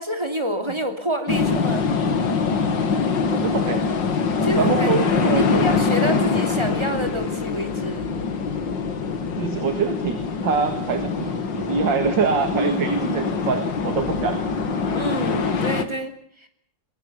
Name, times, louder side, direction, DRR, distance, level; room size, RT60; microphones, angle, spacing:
voice 1, 0.0-1.9 4.4-8.1 12.5-13.3 14.9-16.5, right 1 dB, 15° right, 6 dB, 2.9 m, -27 dB
sound 1, 1.3-15.8, left 5 dB, 70° left, 2.6 m, -24 dB
voice 2, 3.3-3.8 4.5-5.7 9.4-14.4, right 5 dB, 75° right, 9 dB, 2.6 m, -25 dB
23.0 x 23.0 x 6.9 m, 0.65 s
omnidirectional pair, 2.0 m